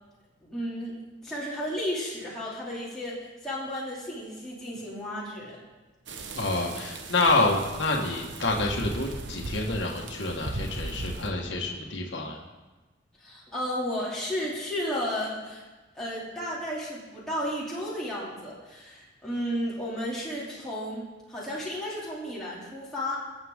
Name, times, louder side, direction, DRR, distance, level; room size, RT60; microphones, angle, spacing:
voice 1, 0.4-1.0 1.2-5.6 13.2-15.6 15.9-23.2, equal, 5° left, -9 dB, 2.9 m, -33 dB
sound 1, 6.1-11.3, right 2 dB, 80° right, 1.2 m, -38 dB
voice 2, 6.3-12.4, left 2 dB, 80° left, -1 dB, 1.7 m, -27 dB
22.5 x 8.0 x 3.7 m, 1.2 s
head